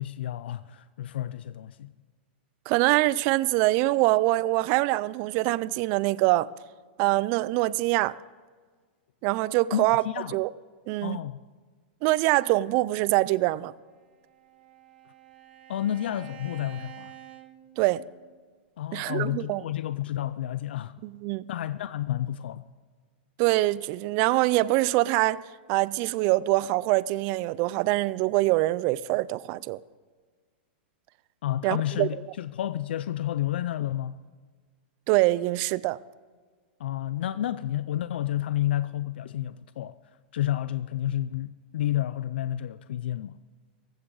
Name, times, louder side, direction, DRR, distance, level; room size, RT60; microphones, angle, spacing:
voice 1, 0.0-1.9 9.7-10.4 11.0-11.4 15.7-17.1 18.8-21.0 21.5-22.6 31.4-34.2 36.8-40.0 40.3-43.4, left 12 dB, 75° left, 0.4 m, -30 dB
voice 2, 2.7-6.5 7.0-8.1 9.2-10.0 10.3-10.5 10.9-11.2 12.0-13.7 17.8-18.0 18.9-19.6 21.0-21.4 23.4-25.4 25.7-29.8 31.6-32.1 35.1-36.0, right 19 dB, 40° right, 0.4 m, -24 dB
Bowed string instrument, 13.9-18.4, right 11 dB, 60° right, 1.7 m, -49 dB
17.5 x 15.5 x 4.0 m
hypercardioid pair, 140°, 6 cm